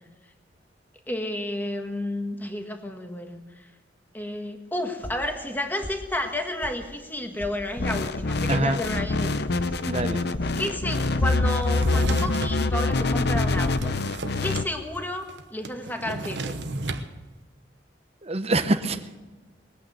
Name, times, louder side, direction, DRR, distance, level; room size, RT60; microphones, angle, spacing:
voice 1, 1.1-3.6 4.1-9.7 10.6-14.0 14.4-16.6, left 1 dB, 10° left, 4 dB, 1.6 m, -31 dB
sound 1, 5.0-5.6 5.8-6.3 6.6-6.7 7.1-7.5 7.8-8.3 8.6-9.1 9.4-9.8 10.1-10.6 10.9-11.4, equal, 10° right, 1.2 m, -40 dB
sound 2, 7.8-14.6, left 3 dB, 65° left, 0.7 m, -25 dB
voice 2, 8.5-8.8 9.9-10.2 18.2-19.2, right 2 dB, 35° right, 10 dB, 0.9 m, -25 dB
Drawer open or close, 11.6-12.6 13.2-14.7 15.0-15.1 15.3-17.1, right 2 dB, 75° right, 1.0 m, -33 dB
21.0 x 8.8 x 7.8 m, 1.3 s
head